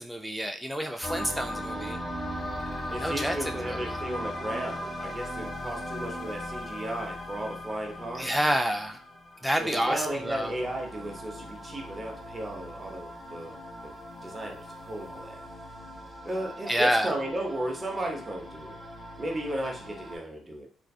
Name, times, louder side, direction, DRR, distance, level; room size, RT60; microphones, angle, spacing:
voice 1, 0.0-2.0 2.9-3.9 8.2-9.0 9.4-10.5 16.7-17.1, equal, ahead, 4 dB, 0.4 m, -28 dB
sound 1, 1.0-20.2, equal, 15° left, 0.8 m, -39 dB
voice 2, 2.9-8.3 9.6-13.6 14.2-15.4 16.2-18.8 19.2-20.7, right 1 dB, 25° right, 1 dB, 0.7 m, -35 dB
2.5 x 2.4 x 2.3 m, 0.40 s
cardioid pair, 90°, 0 cm